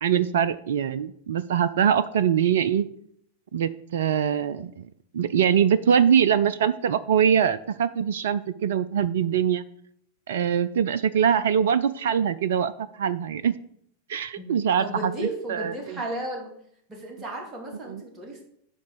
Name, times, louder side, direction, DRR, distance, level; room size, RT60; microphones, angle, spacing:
voice 1, 0.0-2.9 3.5-4.9 5.1-9.6 10.3-12.7 13.0-13.5 14.1-15.1 15.5-16.0 17.9-18.0, right 8 dB, 60° right, 17 dB, 0.4 m, -23 dB
voice 2, 14.4-16.5 16.9-18.5, right 1 dB, 20° right, 1 dB, 2.6 m, -34 dB
10.5 x 3.9 x 6.6 m, 0.68 s
figure-of-eight pair, 90°, 0 cm